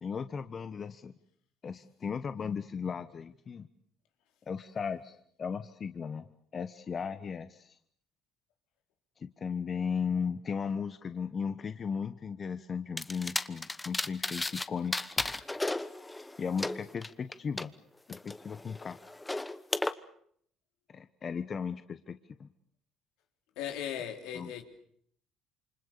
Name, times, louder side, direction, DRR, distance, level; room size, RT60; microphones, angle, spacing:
voice 1, 0.0-1.1 1.6-3.7 4.5-6.3 6.5-7.8 9.2-15.0 16.4-17.7 18.1-19.0 20.9-22.5 24.3-24.5, left 6 dB, 40° left, 1.2 m, -36 dB
sound 1, 13.0-14.7 14.9-17.6 18.1-19.9, left 2 dB, 15° left, 1.2 m, -34 dB
voice 2, 23.6-24.6, left 9 dB, 80° left, 3.5 m, -37 dB
28.0 x 25.0 x 6.9 m
supercardioid pair, 80°, 0 cm